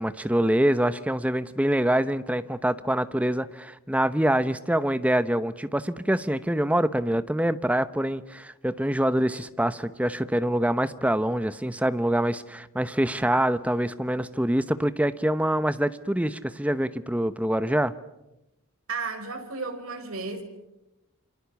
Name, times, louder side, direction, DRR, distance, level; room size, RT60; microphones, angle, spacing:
voice 1, 0.0-17.9, right 1 dB, 5° right, 13 dB, 0.9 m, -25 dB
voice 2, 18.9-20.4, right 4 dB, 75° right, 6 dB, 4.9 m, -33 dB
28.5 x 27.0 x 7.1 m, 0.92 s
head